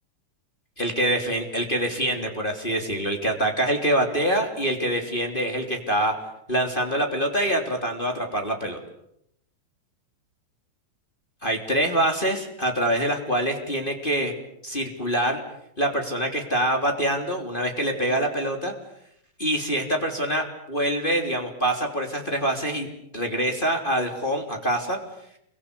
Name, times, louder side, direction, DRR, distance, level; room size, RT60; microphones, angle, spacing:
voice 1, 0.8-6.1 6.5-8.8 11.4-14.3 14.6-15.4 15.8-18.7 19.4-22.9 23.1-25.0, right 1 dB, 15° left, 3 dB, 3.3 m, -25 dB
28.5 x 24.0 x 8.4 m, 0.75 s
omnidirectional pair, 3.8 m